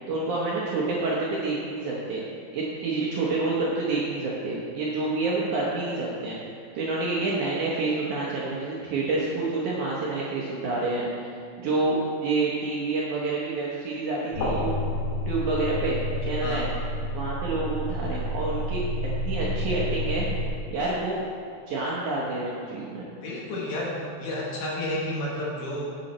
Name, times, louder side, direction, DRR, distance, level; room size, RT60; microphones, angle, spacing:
voice 1, 0.1-2.2 2.5-14.7 15.3-16.7 17.1-18.8 19.2-20.3 20.7-21.2 21.7-23.1, right 3 dB, 70° right, -5 dB, 1.9 m, -28 dB
sound 1, 14.3-20.5, equal, 80° left, 4.1 m, -29 dB
voice 2, 23.2-25.9, left 1 dB, 65° left, -4 dB, 2.4 m, -31 dB
9.5 x 7.9 x 4.2 m, 2.5 s
omnidirectional pair, 4.7 m